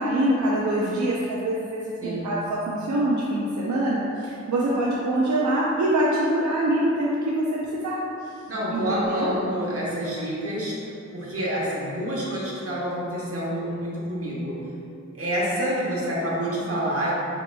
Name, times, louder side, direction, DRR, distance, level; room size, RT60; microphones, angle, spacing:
voice 1, 0.0-8.3 8.7-9.3, right 1 dB, 75° right, -5 dB, 0.4 m, -24 dB
voice 2, 2.0-2.4 8.5-14.6 15.1-17.1, equal, 50° right, -6 dB, 0.9 m, -28 dB
5.0 x 2.8 x 2.2 m, 2.7 s
wide cardioid pair, 95°, 29 cm